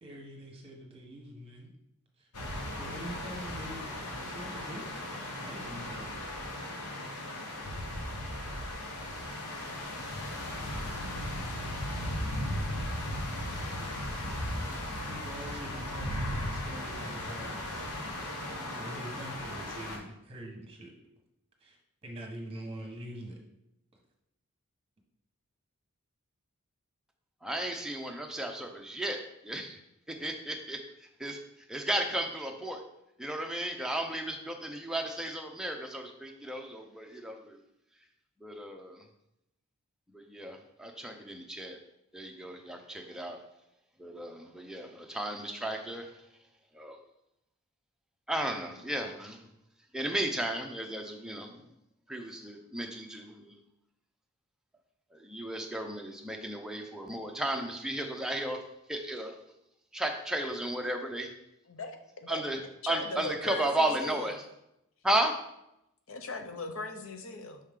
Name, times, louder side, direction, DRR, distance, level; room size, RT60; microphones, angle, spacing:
voice 1, 0.0-1.7 2.2-2.3 2.8-4.9 5.4-6.1 15.0-17.9 18.5-20.9 21.6-21.8 22.0-23.4, equal, 25° right, 1 dB, 1.2 m, -44 dB
sound 1, 2.3-20.0, left 1 dB, 85° left, 1.2 m, -37 dB
voice 2, 27.4-29.8 30.1-31.4 31.7-32.8 33.2-37.6 38.4-39.0 40.1-41.8 42.1-43.4 44.0-46.1 46.7-47.0 48.3-49.5 49.9-51.6 52.1-53.6 55.1-58.6 58.9-59.4 59.9-61.3 62.3-64.4 65.0-65.3, right 1 dB, 5° right, 2 dB, 0.5 m, -34 dB
voice 3, 62.8-64.3 66.1-67.6, left 2 dB, 60° left, 6 dB, 0.7 m, -39 dB
5.6 x 4.9 x 3.6 m, 0.83 s
head